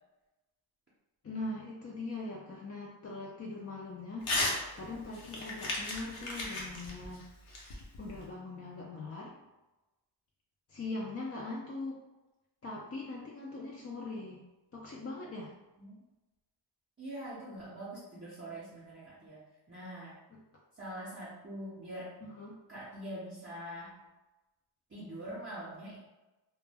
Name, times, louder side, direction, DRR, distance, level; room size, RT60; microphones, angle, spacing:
voice 1, 1.2-4.3 4.7-7.6 8.0-9.4 10.7-12.0 12.6-14.4 14.7-15.5 22.2-22.6, left 2 dB, 30° left, -3 dB, 0.4 m, -41 dB
Crumpling crinkling / Tearing, 4.2-4.6 4.9-8.2, left 2 dB, 75° left, 0.8 m, -35 dB
voice 2, 17.0-20.2 20.7-22.1 22.7-24.1 24.9-26.0, right 1 dB, 25° right, -8 dB, 0.6 m, -44 dB
2.1 x 2.0 x 3.3 m, 1.1 s
cardioid pair, 65°, 50 cm